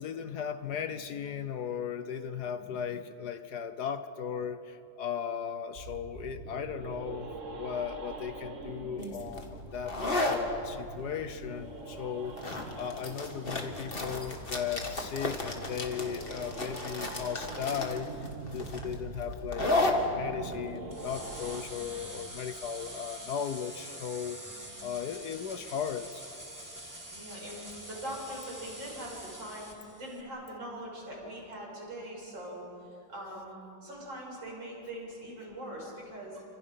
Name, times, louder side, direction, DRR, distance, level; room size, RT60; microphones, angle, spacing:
voice 1, 0.0-12.5 12.8-24.4 24.8-26.2, left 8 dB, 65° left, 11 dB, 1.4 m, -37 dB
sound 1, 5.7-21.6, right 3 dB, 40° right, 2.0 m, -44 dB
sound 2, 9.0-22.4, left 2 dB, 30° left, 2.2 m, -34 dB
sound 3, 20.9-30.2, right 1 dB, 10° right, 2.1 m, -45 dB
voice 2, 21.6-22.0 22.8-22.9 24.6-25.1 27.1-29.7 30.0-32.6 33.1-36.4, right 1 dB, 80° right, -3 dB, 8.3 m, -42 dB
30.0 x 26.5 x 5.8 m, 2.7 s
omnidirectional pair, 2.0 m